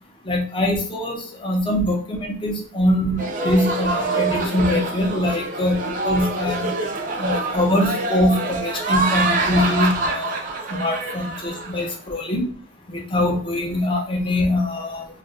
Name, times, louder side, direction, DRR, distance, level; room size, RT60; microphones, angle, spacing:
voice 1, 0.2-6.7 7.2-12.5 12.9-15.1, left 1 dB, 25° left, 0 dB, 0.7 m, -23 dB
sound 1, 3.2-11.9, right 2 dB, 45° right, 0.6 m, -25 dB
2.4 x 2.2 x 3.9 m, 0.43 s
head